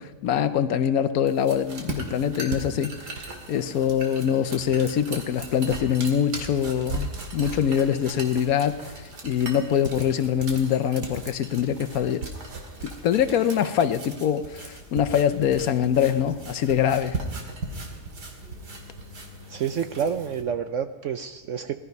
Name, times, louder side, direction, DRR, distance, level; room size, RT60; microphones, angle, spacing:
voice 1, 0.0-2.9 3.5-12.3 12.8-17.2, left 9 dB, 65° left, 12 dB, 1.1 m, -24 dB
sound 1, 1.3-20.4, right 2 dB, 85° right, 2.5 m, -37 dB
voice 2, 19.5-21.7, right 7 dB, 65° right, 9 dB, 0.8 m, -28 dB
18.5 x 12.5 x 5.3 m, 1.3 s
omnidirectional pair, 1.7 m